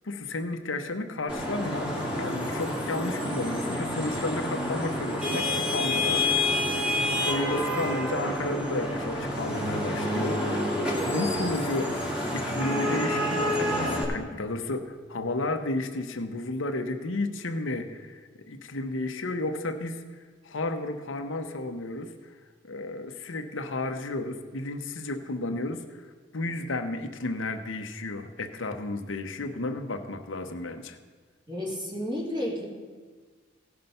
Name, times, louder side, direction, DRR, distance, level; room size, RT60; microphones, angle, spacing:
voice 1, 0.0-11.9 12.3-20.0 20.4-22.1 22.6-26.1 26.3-31.0, left 2 dB, 85° left, 6 dB, 0.9 m, -33 dB
Vehicle horn car horn honking / Traffic noise roadway noise, 1.3-14.0, left 1 dB, 5° right, 2.1 m, -28 dB
voice 2, 31.5-32.7, equal, 25° right, -3 dB, 2.7 m, -31 dB
16.5 x 5.7 x 5.4 m, 1.5 s
head